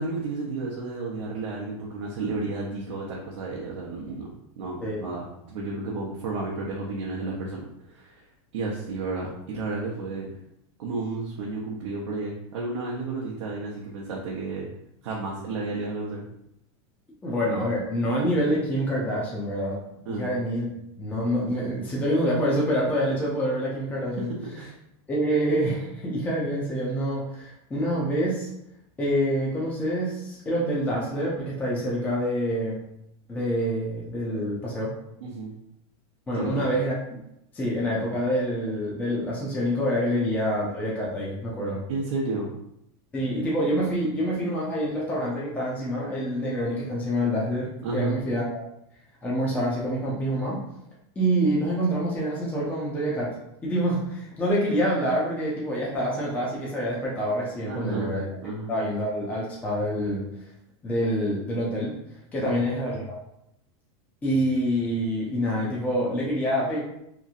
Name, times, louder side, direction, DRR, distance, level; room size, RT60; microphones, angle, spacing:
voice 1, 0.0-4.3 4.6-8.2 8.5-10.3 10.8-14.7 15.0-16.3 20.1-20.3 24.2-24.7 35.2-35.5 36.3-36.6 40.0-40.2 41.9-42.5 47.8-48.2 57.6-58.2 58.4-58.7 62.4-62.6, right 3 dB, 85° right, -3 dB, 0.6 m, -32 dB
voice 2, 17.2-19.8 20.1-20.7 21.0-24.3 25.1-28.5 29.0-32.8 33.3-34.9 36.3-36.9 37.5-41.8 43.1-48.6 49.2-50.6 51.2-53.3 53.6-58.3 58.7-60.2 60.8-61.9 62.3-63.2 64.2-66.8, equal, 10° left, -5 dB, 0.5 m, -26 dB
2.9 x 2.6 x 2.4 m, 0.79 s
supercardioid pair, 160°, 15 cm